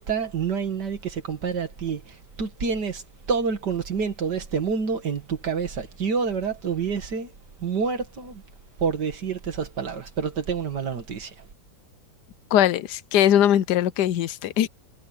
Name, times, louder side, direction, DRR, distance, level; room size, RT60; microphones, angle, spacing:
voice 1, 0.0-3.0 3.3-7.3 7.6-8.4 8.8-11.3, right 6 dB, 75° right, 2.5 m, -28 dB
voice 2, 12.5-14.7, left 11 dB, 75° left, 1.3 m, -20 dB
omnidirectional pair, 1.8 m